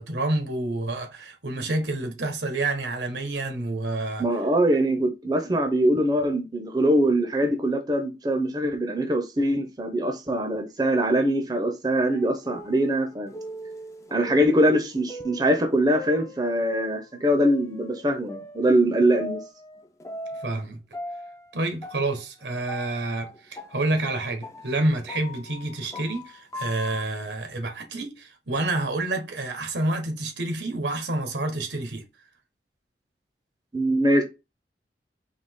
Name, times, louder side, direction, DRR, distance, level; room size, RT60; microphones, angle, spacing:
voice 1, 0.0-4.2 20.4-20.8 21.5-32.0, right 2 dB, 80° right, 1.2 m, -28 dB
voice 2, 4.2-13.3 14.1-19.4 33.7-34.2, right 1 dB, 25° right, 0.6 m, -23 dB
sound 1, 12.1-16.9 17.4-20.7 20.9-27.0, left 1 dB, 20° left, 0.5 m, -40 dB
4.0 x 2.9 x 3.5 m
head